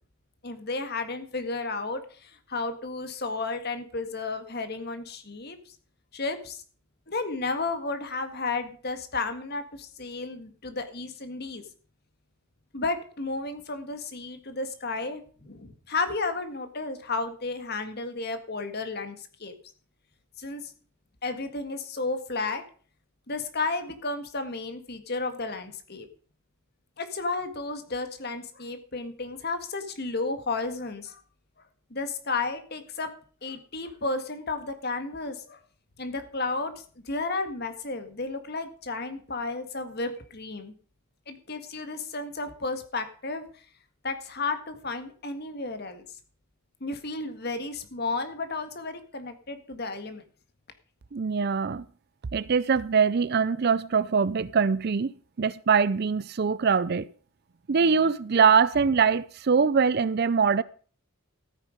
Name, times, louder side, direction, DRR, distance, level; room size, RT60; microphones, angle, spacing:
voice 1, 0.4-5.6 6.1-6.6 7.1-11.6 12.7-19.5 20.4-20.7 21.2-22.6 23.3-26.1 27.0-31.2 31.9-33.1 33.4-35.6 36.0-36.7 37.1-40.7 41.3-43.5 44.0-46.0 46.8-50.2, left 3 dB, 50° left, 1.8 m, -33 dB
voice 2, 51.1-51.8 52.3-55.1 55.4-57.1 57.7-60.6, right 5 dB, 50° right, 0.5 m, -23 dB
14.0 x 9.3 x 5.1 m
head